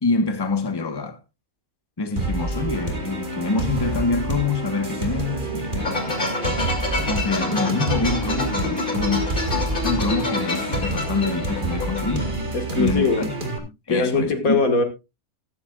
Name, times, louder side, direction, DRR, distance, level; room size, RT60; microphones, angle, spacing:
voice 1, 0.0-1.2 2.0-6.4 7.1-9.4 9.8-12.3 12.8-13.3 13.9-14.6, left 3 dB, 20° left, 1.2 m, -26 dB
sound 1, 2.2-13.6, right 1 dB, 35° right, 2.4 m, -28 dB
sound 2, 5.8-12.3, left 2 dB, 35° left, 3.0 m, -28 dB
voice 2, 12.5-13.2 13.9-14.8, left 3 dB, 75° left, 2.3 m, -21 dB
14.0 x 13.0 x 2.4 m
omnidirectional pair, 1.5 m